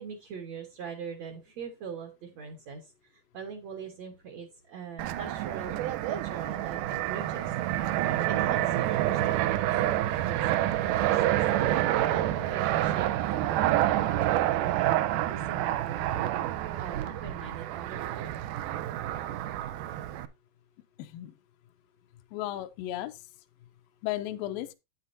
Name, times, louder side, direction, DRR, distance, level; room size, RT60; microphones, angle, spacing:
voice 1, 0.0-5.8 6.0-7.5 8.3-11.4 11.7-16.3 16.8-18.3, right 6 dB, 60° right, 1.9 m, -42 dB
Fixed-wing aircraft airplane, 5.0-20.3, right 13 dB, 80° right, 1.8 m, -28 dB
voice 2, 21.0-21.3 22.3-23.2 24.0-24.7, left 14 dB, 80° left, 2.1 m, -34 dB
9.8 x 9.1 x 2.6 m
omnidirectional pair, 4.3 m